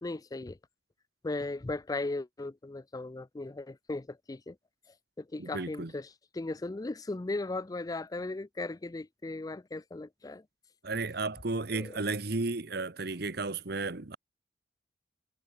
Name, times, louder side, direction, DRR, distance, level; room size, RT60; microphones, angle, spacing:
voice 1, 0.0-0.6 1.2-4.6 5.2-6.1 6.3-10.4 11.7-12.0, left 2 dB, 20° left, 0.4 m, -37 dB
voice 2, 5.4-5.9 10.8-14.2, right 3 dB, 60° right, 1.3 m, -33 dB
head